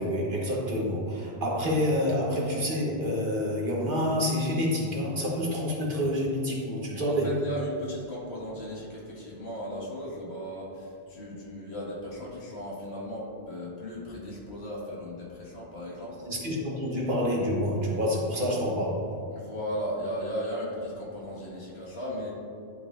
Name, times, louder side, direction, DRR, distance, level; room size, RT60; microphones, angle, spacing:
voice 1, 0.0-7.3 16.3-19.2, equal, 50° right, -3 dB, 1.3 m, -28 dB
voice 2, 7.0-16.3 19.3-22.3, equal, 65° left, -5 dB, 1.9 m, -36 dB
11.0 x 5.0 x 2.5 m, 2.7 s
omnidirectional pair, 1.2 m